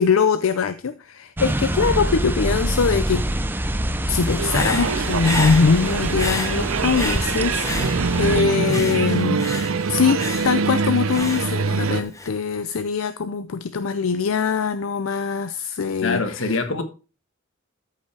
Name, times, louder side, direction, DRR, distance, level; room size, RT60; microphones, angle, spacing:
voice 1, 0.0-3.4 4.1-9.6 9.9-16.6, left 5 dB, 85° left, 0.5 m, -22 dB
sound 1, 1.4-8.4, right 1 dB, 10° right, 0.6 m, -25 dB
Human voice / Breathing, 4.2-8.3 8.7-12.3, left 2 dB, 15° left, 1.0 m, -32 dB
sound 2, 4.4-12.0, right 5 dB, 80° right, 0.6 m, -24 dB
voice 2, 16.0-16.8, left 3 dB, 70° left, 1.4 m, -24 dB
13.5 x 5.6 x 3.3 m
head